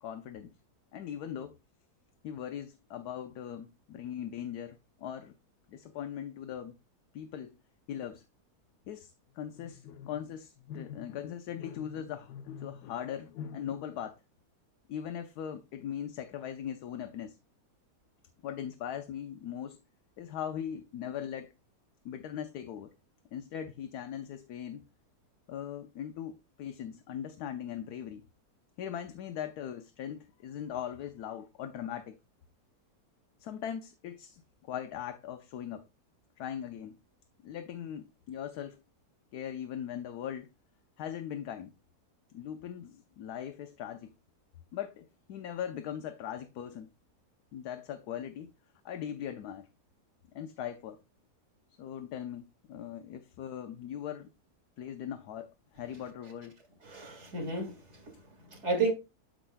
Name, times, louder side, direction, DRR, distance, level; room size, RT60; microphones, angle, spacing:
voice 1, 0.0-0.5 0.9-1.6 2.2-5.3 5.7-6.8 7.1-7.6 7.9-8.2 8.9-14.2 14.9-17.4 18.4-19.8 20.2-21.5 22.0-22.9 23.3-24.8 25.5-28.2 28.8-32.2 33.4-35.8 36.4-37.0 37.4-38.8 39.3-40.5 41.0-41.7 42.3-44.1 44.7-46.9 47.5-48.5 48.8-49.7 50.3-51.0 51.8-54.3 54.8-56.6 58.7-58.9, left 9 dB, 80° left, 1.2 m, -40 dB
voice 2, 56.9-58.1 58.5-58.9, right 3 dB, 45° right, 2.1 m, -32 dB
13.0 x 5.0 x 2.2 m
omnidirectional pair, 1.7 m